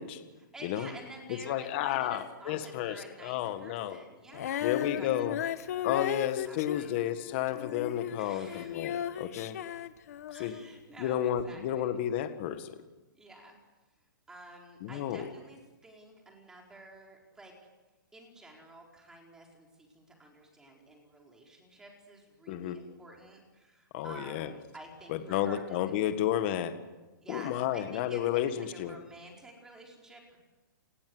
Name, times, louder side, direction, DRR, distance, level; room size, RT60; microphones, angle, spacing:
voice 1, 0.4-5.1 5.3-5.5 5.9-6.2 6.4-7.0 8.2-8.8 10.3-11.9 13.2-13.6 14.3-17.5 18.1-26.1 27.2-28.4 28.7-30.4, right 1 dB, 5° right, 0 dB, 4.5 m, -51 dB
voice 2, 1.3-4.0 4.6-5.4 5.8-9.6 10.4-10.6 11.0-12.8 14.8-15.3 22.5-22.8 23.9-24.5 25.1-26.8 27.3-29.0, left 11 dB, 30° left, 9 dB, 1.8 m, -32 dB
Female singing, 4.3-10.7 11.4-11.5, left 10 dB, 45° left, 1.3 m, -36 dB
29.0 x 21.0 x 8.0 m, 1.1 s
hypercardioid pair, 170°, 11 cm